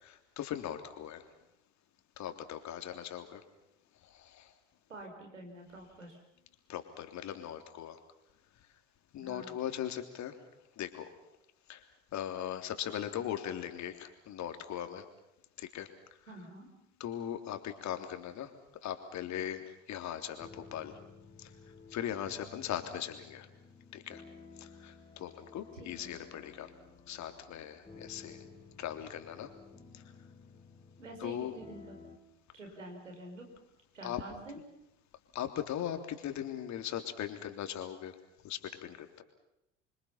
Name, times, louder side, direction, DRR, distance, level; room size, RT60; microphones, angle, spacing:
voice 1, 0.0-1.2 2.2-3.4 4.1-4.5 6.7-8.0 9.1-10.3 10.8-11.1 11.7-11.8 12.1-15.0 15.6-15.9 17.0-18.5 18.8-20.9 21.4-21.5 21.9-23.5 23.9-24.2 24.6-26.7 27.1-28.4 28.8-29.5 31.2-31.5 34.0-34.2 35.3-38.1 38.4-39.2, left 10 dB, 50° left, 8 dB, 3.5 m, -39 dB
voice 2, 4.9-6.2 9.2-9.5 16.3-16.7 25.7-26.2 31.0-32.0 32.5-33.5 33.9-34.6, right 1 dB, 85° right, 2 dB, 5.8 m, -47 dB
sound 1, 20.4-32.2, left 4 dB, 15° left, 4.1 m, -54 dB
28.5 x 24.5 x 5.8 m, 0.86 s
figure-of-eight pair, 65°, 37 cm